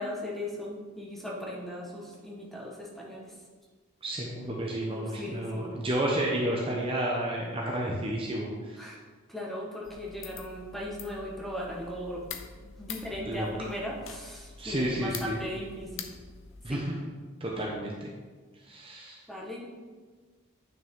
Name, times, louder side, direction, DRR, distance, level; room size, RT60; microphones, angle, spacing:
voice 1, 0.0-3.3 4.9-5.7 8.8-9.0 9.3-12.2 12.6-16.1 16.7-16.9 17.6-17.7 19.3-19.6, left 1 dB, ahead, -3 dB, 1.3 m, -38 dB
voice 2, 4.0-8.9 13.2-13.5 14.6-15.4 16.6-16.9 17.4-18.1 18.7-19.2, right 1 dB, 25° right, -2 dB, 0.8 m, -31 dB
sound 1, 9.8-16.8, left 6 dB, 60° left, 0.7 m, -45 dB
9.4 x 5.9 x 3.7 m, 1.4 s
head